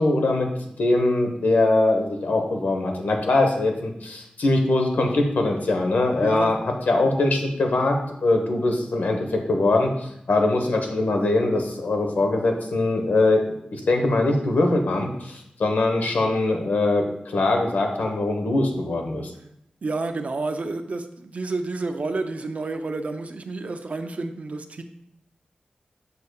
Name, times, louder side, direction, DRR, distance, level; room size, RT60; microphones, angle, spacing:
voice 1, 0.0-6.6 6.9-13.4 13.7-19.3, left 2 dB, 85° left, 3 dB, 1.1 m, -22 dB
voice 2, 6.2-6.5 19.8-24.8, right 3 dB, 55° right, 7 dB, 0.6 m, -29 dB
6.9 x 6.6 x 2.3 m, 0.77 s
wide cardioid pair, 100°, 3 cm